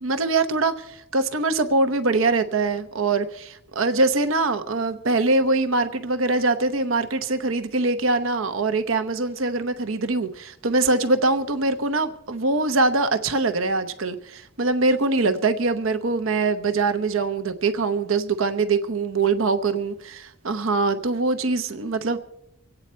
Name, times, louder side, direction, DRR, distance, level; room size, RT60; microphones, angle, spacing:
voice 1, 0.0-22.2, right 3 dB, 80° right, 10 dB, 0.9 m, -23 dB
25.0 x 8.9 x 4.3 m, 0.83 s
head